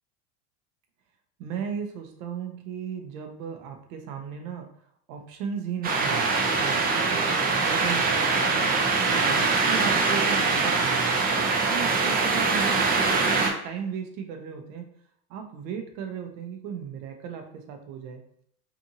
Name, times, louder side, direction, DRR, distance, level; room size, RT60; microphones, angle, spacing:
voice 1, 1.4-4.7 5.1-6.3 6.5-8.8 9.2-14.9 15.3-18.2, right 7 dB, 65° right, 4 dB, 0.7 m, -36 dB
sound 1, 5.8-13.5, right 4 dB, 20° right, 0.5 m, -23 dB
2.7 x 2.5 x 2.6 m, 0.67 s
supercardioid pair, 105°, 44 cm